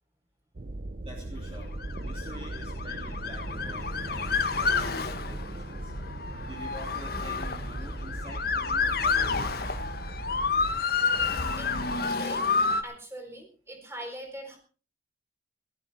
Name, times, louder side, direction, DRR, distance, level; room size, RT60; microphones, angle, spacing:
sound 1, 0.5-10.8, right 1 dB, 45° right, 0.7 m, -38 dB
voice 1, 1.0-1.7 2.0-5.9 6.5-10.0, right 1 dB, 30° right, -1 dB, 3.0 m, -47 dB
Motor vehicle (road) / Siren, 1.7-12.8, left 4 dB, 50° left, 1.5 m, -29 dB
voice 2, 12.1-12.5 12.8-14.6, right 1 dB, 15° right, 3 dB, 4.4 m, -41 dB
18.5 x 13.0 x 4.3 m, 0.38 s
head